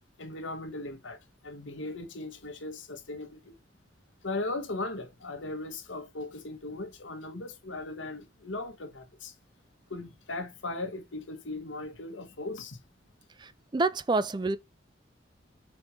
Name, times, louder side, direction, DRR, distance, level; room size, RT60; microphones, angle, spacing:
voice 1, 0.2-3.6 4.2-9.3 9.9-12.8, left 2 dB, 85° left, 1.3 m, -38 dB
voice 2, 13.4-14.6, right 3 dB, 25° right, 0.4 m, -28 dB
4.6 x 4.3 x 4.8 m
head